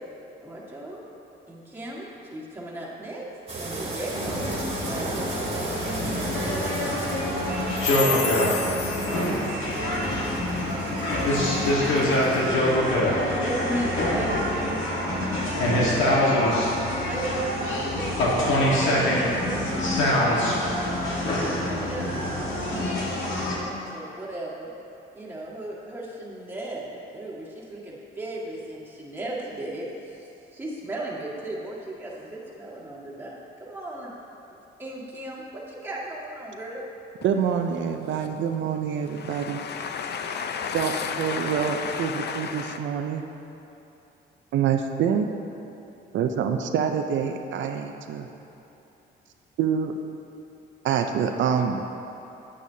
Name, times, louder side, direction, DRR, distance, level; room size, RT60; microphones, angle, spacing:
voice 1, 0.4-1.1 1.5-4.5 4.8-6.6 7.5-10.7 12.3-18.2 18.7-20.6 21.0-24.7 25.1-34.1 34.8-36.8 37.3-37.7, right 1 dB, 10° right, -6 dB, 1.7 m, -36 dB
sound 1, 3.5-12.5, right 2 dB, 30° right, 1.7 m, -35 dB
sound 2, 4.1-23.6, left 1 dB, 80° left, 1.5 m, -25 dB
sound 3, 7.4-17.8, right 2 dB, 55° right, 1.2 m, -38 dB
voice 2, 8.3-8.6 9.4-9.5 39.0-42.8, left 7 dB, 60° left, 7 dB, 0.5 m, -32 dB
voice 3, 37.2-39.6 40.7-43.2 44.5-45.3 46.1-48.3 49.6-49.9 50.8-51.8, right 7 dB, 70° right, 5 dB, 0.5 m, -26 dB
8.6 x 8.5 x 2.7 m, 2.9 s
cardioid pair, 90°, 20 cm